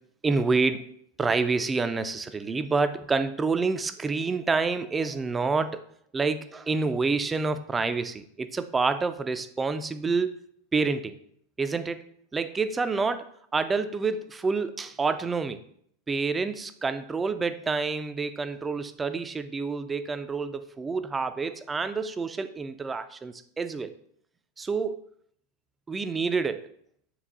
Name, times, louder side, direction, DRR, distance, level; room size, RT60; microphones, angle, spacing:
voice 1, 0.2-0.8 1.2-5.8 6.1-10.3 10.7-11.2 11.6-12.1 12.3-15.6 16.1-23.9 24.6-25.0 25.9-26.7, right 4 dB, 15° right, 11 dB, 0.3 m, -28 dB
4.5 x 3.0 x 3.7 m, 0.66 s
figure-of-eight pair, 90°, 0 cm